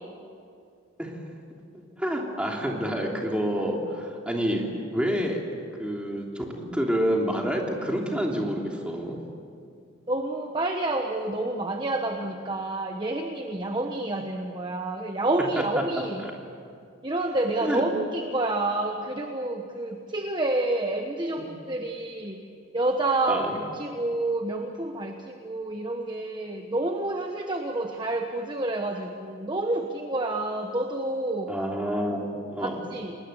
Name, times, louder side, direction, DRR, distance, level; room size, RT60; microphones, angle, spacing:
voice 1, 2.0-4.7 4.9-9.2 16.2-16.3 17.6-17.8 21.4-21.5 23.3-23.5 31.5-32.8, equal, 5° right, -1 dB, 3.2 m, -28 dB
voice 2, 10.1-16.2 17.0-22.4 22.7-31.5 32.6-33.2, right 2 dB, 25° right, 3 dB, 1.2 m, -29 dB
29.5 x 20.0 x 8.2 m, 2.4 s
head